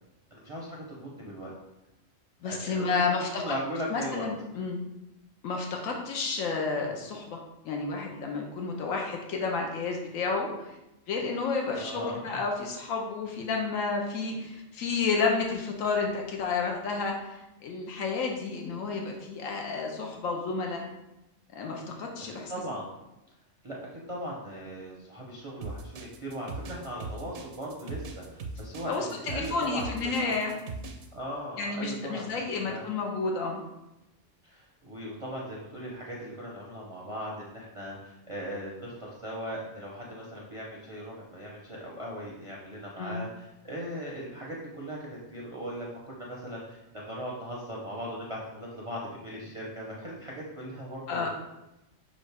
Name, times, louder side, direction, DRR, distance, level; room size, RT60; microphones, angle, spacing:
voice 1, 0.3-1.5 2.4-4.3 11.7-12.4 21.9-22.1 22.5-22.9 23.6-23.8 24.1-30.4 31.1-32.9 34.4-51.3, equal, 35° right, -4 dB, 0.5 m, -39 dB
voice 2, 2.4-3.5 3.9-4.8 5.4-7.4 7.6-10.8 11.1-20.8 21.5-22.5 28.9-30.6 31.6-33.6 43.0-43.2 51.1-51.3, left 4 dB, 85° left, 1 dB, 1.0 m, -31 dB
sound 1, 25.6-31.1, right 3 dB, 85° right, 1.0 m, -39 dB
6.1 x 2.5 x 3.3 m, 0.95 s
omnidirectional pair, 1.4 m